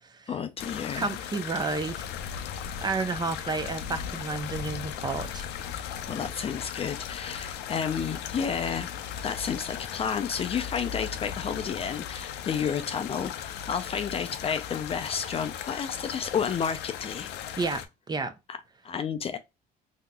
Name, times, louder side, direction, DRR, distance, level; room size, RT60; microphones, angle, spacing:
voice 1, 0.3-1.1 6.1-8.9 9.2-17.3 18.5-18.6 18.8-19.4, left 7 dB, 35° left, 0.4 m, -31 dB
sound 1, 0.6-17.8, left 9 dB, 85° left, 0.5 m, -37 dB
voice 2, 1.0-2.1 2.8-5.5 17.6-18.3, right 4 dB, 25° right, 0.7 m, -31 dB
3.7 x 2.8 x 2.2 m
cardioid pair, 110°, 17 cm